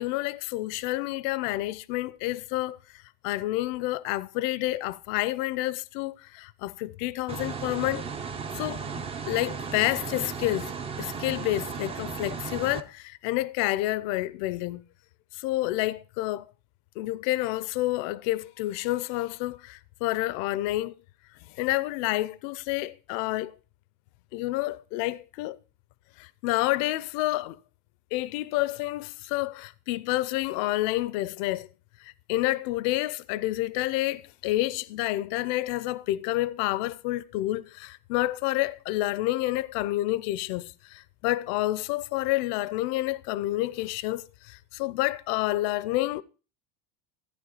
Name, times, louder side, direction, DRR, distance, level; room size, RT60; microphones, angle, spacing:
voice 1, 0.0-2.8 3.2-8.1 8.5-10.7 11.0-14.8 15.4-16.5 17.0-20.9 21.6-23.5 24.3-25.6 26.2-27.6 28.1-31.7 32.0-46.2, left 17 dB, 55° left, 0.6 m, -29 dB
sound 1, 7.3-12.8, right 5 dB, 15° right, 0.5 m, -35 dB
14.0 x 9.3 x 4.0 m
supercardioid pair, 155°, 45 cm